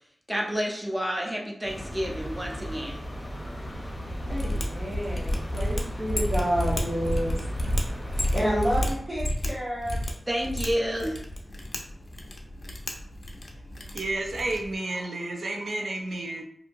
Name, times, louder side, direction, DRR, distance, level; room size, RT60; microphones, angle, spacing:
voice 1, 0.3-3.0 10.3-11.2, equal, 10° right, -1 dB, 0.6 m, -29 dB
sound 1, 1.6-9.0, equal, 15° left, 0.8 m, -36 dB
Mechanisms, 4.2-14.7, left 1 dB, 55° left, 0.5 m, -31 dB
voice 2, 4.3-7.4 8.1-10.0, equal, 50° right, -10 dB, 1.0 m, -29 dB
voice 3, 13.9-16.4, right 2 dB, 80° right, 2 dB, 0.4 m, -31 dB
2.7 x 2.6 x 2.6 m, 0.66 s
wide cardioid pair, 70°, 0 cm